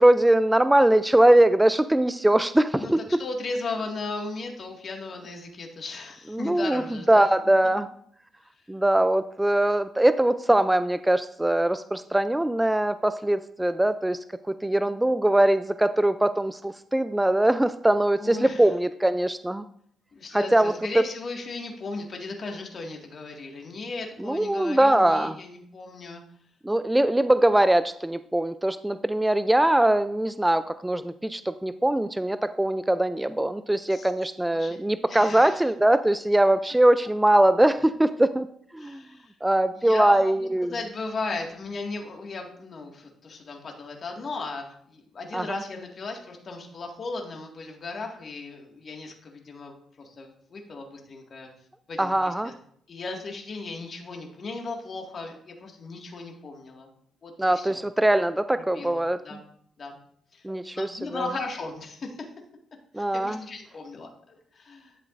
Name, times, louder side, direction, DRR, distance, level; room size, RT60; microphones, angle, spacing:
voice 1, 0.0-3.2 6.3-6.8 7.1-7.9 8.7-14.2 14.6-19.6 20.3-21.0 24.2-25.4 26.6-38.5 38.7-39.0 39.4-40.7 45.3-45.6 52.0-52.5 57.4-59.2 60.4-60.9 61.1-61.2 62.9-63.4, right 1 dB, 10° right, 12 dB, 0.3 m, -22 dB
voice 2, 3.2-7.3 14.5-14.9 18.2-18.7 20.1-26.2 33.9-34.1 34.5-34.8 35.1-35.7 38.8-39.3 39.8-51.5 51.9-52.5 52.9-56.9 57.2-57.8 58.7-59.4 59.8-60.0 60.3-60.5 60.7-62.2 63.0-65.0, left 3 dB, 45° left, 1 dB, 1.9 m, -36 dB
11.0 x 7.3 x 2.5 m, 0.65 s
cardioid pair, 90°, 0 cm